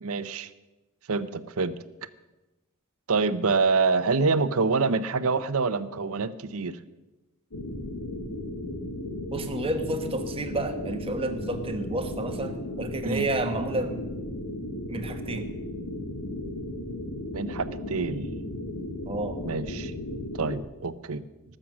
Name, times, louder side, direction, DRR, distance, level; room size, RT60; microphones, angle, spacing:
voice 1, 0.0-0.5 1.1-1.7 3.1-6.8 13.0-13.3 17.3-18.3 19.4-19.9 20.3-21.2, right 4 dB, 70° right, 13 dB, 0.7 m, -26 dB
sound 1, 7.5-20.6, left 1 dB, 90° left, 1.6 m, -35 dB
voice 2, 9.3-14.1 14.9-15.5 19.1-19.4, right 2 dB, 25° right, 6 dB, 1.3 m, -30 dB
18.5 x 7.7 x 6.2 m, 1.1 s
head